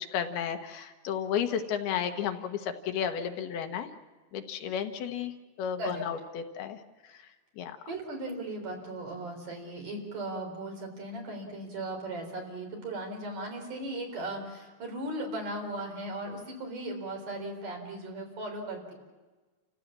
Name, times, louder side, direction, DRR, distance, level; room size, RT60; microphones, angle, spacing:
voice 1, 0.1-3.9 4.3-5.3 5.6-6.8 7.1-7.3 7.6-7.8, left 8 dB, 75° left, 6 dB, 3.0 m, -33 dB
voice 2, 7.9-18.9, right 1 dB, 55° right, 2 dB, 5.3 m, -37 dB
29.5 x 15.5 x 7.4 m, 1.3 s
omnidirectional pair, 4.6 m